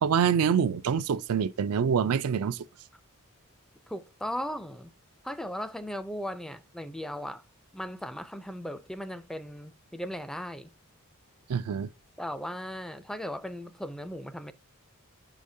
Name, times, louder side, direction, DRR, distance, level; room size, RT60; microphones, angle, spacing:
voice 1, 0.0-2.6 11.5-11.9, right 7 dB, 75° right, 0.4 m, -25 dB
voice 2, 3.9-4.9 5.2-7.4 7.7-10.7 12.2-14.5, equal, ahead, 0.3 m, -37 dB
7.4 x 5.0 x 2.6 m
head